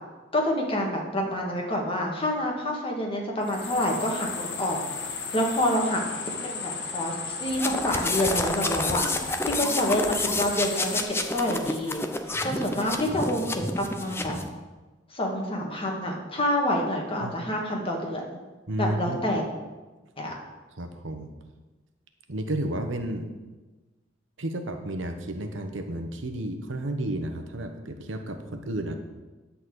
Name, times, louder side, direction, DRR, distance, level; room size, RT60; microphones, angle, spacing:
voice 1, 0.3-4.8 5.3-6.0 6.4-9.1 9.4-12.0 12.4-14.3 15.1-18.4 18.8-19.4 20.2-20.3, left 1 dB, 30° left, 0 dB, 1.8 m, -27 dB
sound 1, 3.4-11.0, left 5 dB, 65° left, 1.3 m, -35 dB
sound 2, 7.5-14.5, left 2 dB, 15° left, 0.7 m, -29 dB
voice 2, 18.7-19.4 20.8-21.3 22.3-23.3 24.4-28.9, right 1 dB, 85° right, 6 dB, 1.1 m, -32 dB
10.5 x 4.2 x 7.8 m, 1.2 s
head